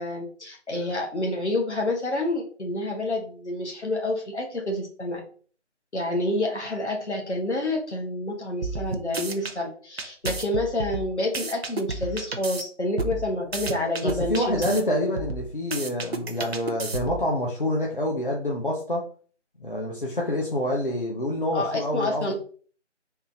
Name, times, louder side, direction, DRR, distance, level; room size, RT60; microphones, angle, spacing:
voice 1, 0.0-5.2 5.9-14.5 21.5-22.3, left 1 dB, 70° left, 0 dB, 1.3 m, -28 dB
sound 1, 8.6-9.5 10.0-12.6 13.0-14.8 15.2-17.3, right 3 dB, 60° right, 0.5 m, -32 dB
voice 2, 14.0-19.1 19.6-22.3, left 1 dB, 45° left, -2 dB, 0.7 m, -27 dB
3.6 x 2.3 x 2.8 m, 0.41 s
figure-of-eight pair, 175°, 36 cm